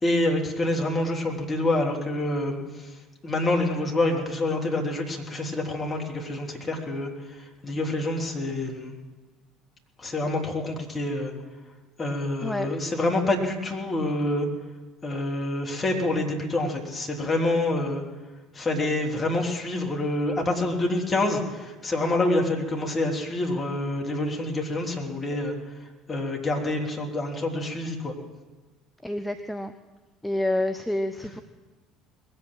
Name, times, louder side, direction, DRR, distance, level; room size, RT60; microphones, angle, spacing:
voice 1, 0.0-2.9 3.2-8.9 10.0-11.3 12.0-14.5 15.0-18.0 18.5-25.6 26.1-28.1, left 2 dB, 25° left, 0 dB, 3.2 m, -27 dB
voice 2, 29.0-29.7 30.2-31.4, left 1 dB, 5° left, 8 dB, 0.7 m, -28 dB
20.5 x 8.9 x 7.3 m, 1.2 s
figure-of-eight pair, 60°, 0 cm